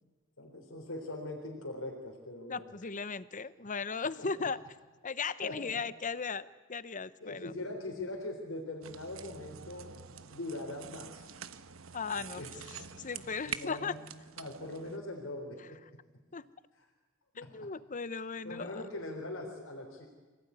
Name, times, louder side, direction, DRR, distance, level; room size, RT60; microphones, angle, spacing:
voice 1, 0.4-2.7 4.2-4.3 5.4-5.8 7.2-10.0 10.3-11.3 12.2-12.9 13.5-15.8 17.3-17.7 18.4-20.1, left 2 dB, 75° left, 1 dB, 3.7 m, -42 dB
voice 2, 2.5-4.6 5.0-7.5 11.9-12.4 13.0-13.9 16.3-16.4 17.4-18.8, left 5 dB, 40° left, 16 dB, 0.8 m, -37 dB
sound 1, 8.8-15.0, right 8 dB, 80° right, 1.1 m, -46 dB
26.0 x 18.0 x 9.7 m, 1.3 s
head